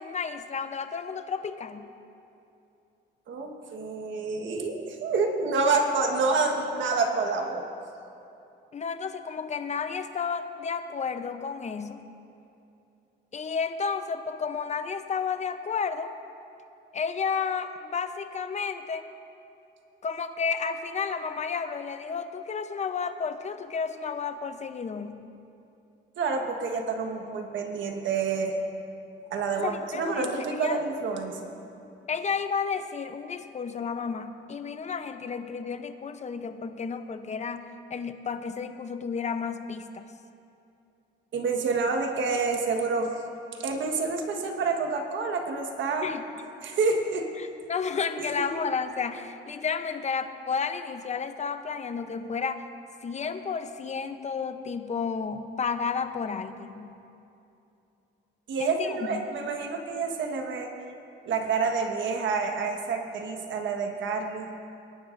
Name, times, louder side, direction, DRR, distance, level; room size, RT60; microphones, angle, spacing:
voice 1, 0.0-1.9 8.7-12.0 13.3-16.1 16.9-19.0 20.0-25.2 29.5-30.8 32.1-40.1 46.0-46.2 47.4-52.6 53.0-56.9 58.6-59.2, left 5 dB, 35° left, 9 dB, 0.7 m, -32 dB
voice 2, 3.3-7.6 26.2-28.5 29.3-31.5 41.3-43.1 43.6-46.1 46.6-47.3 48.2-48.5 58.5-60.7 61.2-64.5, right 4 dB, 70° right, 3 dB, 1.4 m, -28 dB
21.0 x 10.5 x 2.6 m, 2.8 s
cardioid pair, 90°, 20 cm